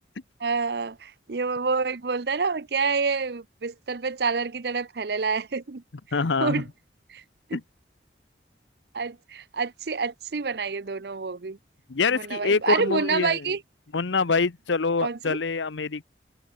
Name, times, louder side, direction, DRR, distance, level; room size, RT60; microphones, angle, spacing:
voice 1, 0.4-5.8 6.4-6.6 7.1-7.2 8.9-11.6 12.1-13.6 15.0-15.4, right 4 dB, 60° right, 0.7 m, -28 dB
voice 2, 6.1-6.6 7.5-7.6 11.9-13.5 13.9-16.0, left 4 dB, 85° left, 0.8 m, -25 dB
head